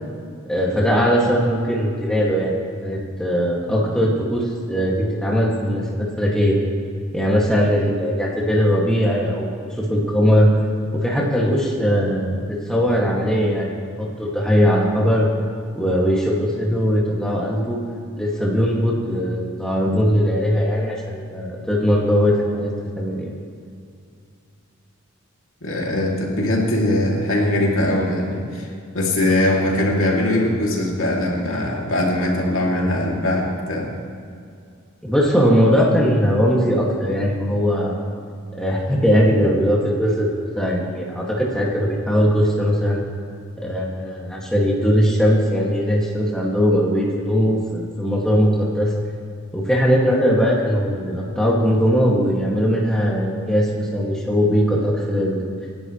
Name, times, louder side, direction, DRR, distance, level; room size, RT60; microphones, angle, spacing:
voice 1, 0.5-6.6 7.1-9.5 9.8-10.5 11.0-12.3 12.7-15.3 15.8-17.8 18.2-23.3 35.0-38.1 38.6-43.0 43.6-48.9 49.5-55.5, equal, 5° left, -4 dB, 2.1 m, -20 dB
voice 2, 25.6-28.7 28.9-33.9, left 1 dB, 70° left, -2 dB, 2.7 m, -21 dB
26.0 x 11.5 x 3.2 m, 2.4 s
head